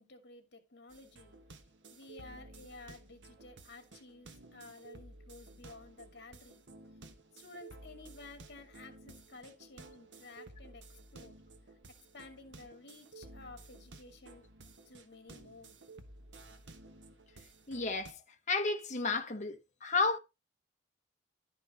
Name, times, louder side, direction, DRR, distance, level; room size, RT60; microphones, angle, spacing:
voice 1, 0.0-1.4 1.9-6.6 7.3-10.8 11.1-11.4 12.1-14.5 14.9-15.8, left 3 dB, 65° left, 2.3 m, -53 dB
sound 1, 0.9-18.1, right 2 dB, 75° right, 1.3 m, -54 dB
voice 2, 17.7-18.2 18.5-20.2, left 4 dB, 40° left, 1.2 m, -32 dB
11.5 x 5.5 x 4.2 m
head